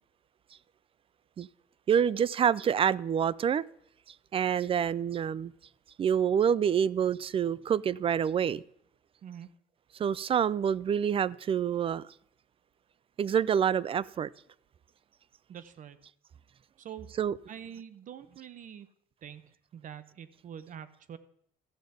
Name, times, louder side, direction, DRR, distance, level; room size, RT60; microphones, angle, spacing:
voice 1, 1.9-3.6 4.3-5.5 6.0-8.6 10.0-12.0 13.2-14.3 17.2-17.4, right 8 dB, 35° right, 0.3 m, -27 dB
voice 2, 15.5-16.0 16.8-17.1 17.5-18.9 19.2-21.2, right 9 dB, 50° right, 0.8 m, -45 dB
13.5 x 5.1 x 7.8 m
cardioid pair, 110°, 17 cm